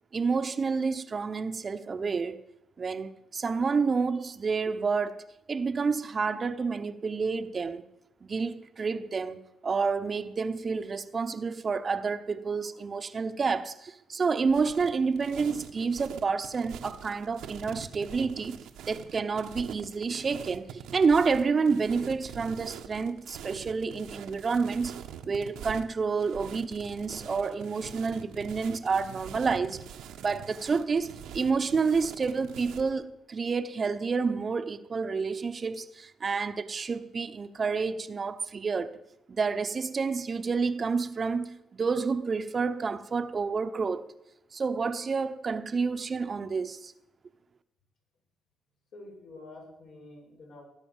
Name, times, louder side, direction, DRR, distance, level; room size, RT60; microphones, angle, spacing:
voice 1, 0.1-2.4 2.8-7.8 8.2-18.6 18.9-25.0 25.2-29.8 30.2-38.9 39.3-44.1 44.5-46.9, right 5 dB, 40° right, 1.0 m, -29 dB
sound 1, 14.5-32.9, right 9 dB, 85° right, 1.4 m, -44 dB
voice 2, 48.9-50.6, left 2 dB, 70° left, 7.5 m, -48 dB
19.0 x 9.9 x 7.3 m
cardioid pair, 90°, 0 cm